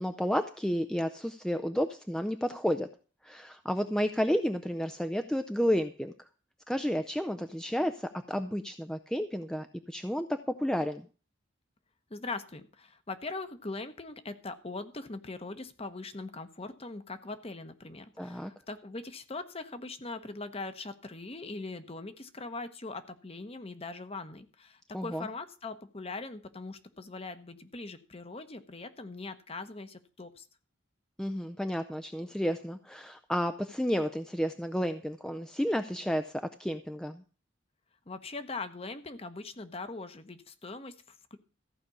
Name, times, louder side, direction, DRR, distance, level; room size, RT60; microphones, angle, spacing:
voice 1, 0.0-2.9 3.2-6.1 6.7-11.1 18.2-18.5 24.9-25.3 31.2-37.2, equal, 5° left, 8 dB, 0.5 m, -31 dB
voice 2, 12.1-30.5 38.1-41.4, left 3 dB, 30° left, 10 dB, 1.0 m, -41 dB
14.5 x 5.2 x 8.3 m, 0.37 s
head